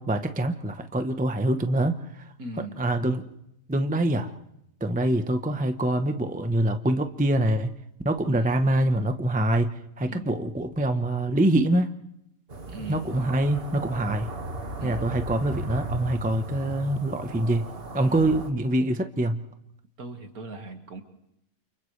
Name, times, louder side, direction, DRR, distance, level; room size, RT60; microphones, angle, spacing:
voice 1, 0.0-2.0 2.8-3.2 3.7-4.3 4.8-7.7 8.0-9.7 10.0-11.9 12.9-14.3 14.8-17.6 17.9-19.4, right 1 dB, 5° right, 7 dB, 0.7 m, -24 dB
voice 2, 2.4-2.9 8.2-8.5 10.0-10.4 12.7-13.4 14.8-15.1 18.0-18.4 20.0-21.0, right 3 dB, 60° right, 5 dB, 2.4 m, -40 dB
sound 1, 12.5-18.5, right 2 dB, 35° right, 1.9 m, -36 dB
29.5 x 29.0 x 3.3 m, 0.80 s
omnidirectional pair, 1.7 m